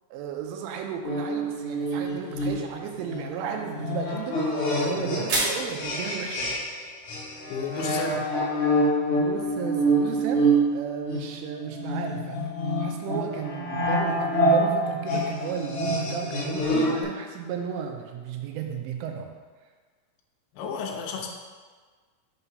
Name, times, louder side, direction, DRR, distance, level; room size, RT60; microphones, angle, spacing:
voice 1, 0.1-6.6 9.1-12.4 12.8-19.3, right 7 dB, 85° right, 3 dB, 2.8 m, -34 dB
sound 1, 1.0-6.8 7.1-17.0, right 1 dB, 60° left, 2.0 m, -26 dB
sound 2, 3.7-9.6, right 1 dB, 65° right, 1.7 m, -36 dB
voice 2, 7.5-8.2 20.5-21.3, left 5 dB, 85° left, 1 dB, 2.2 m, -32 dB
6.9 x 2.7 x 5.4 m, 1.5 s
omnidirectional pair, 5.1 m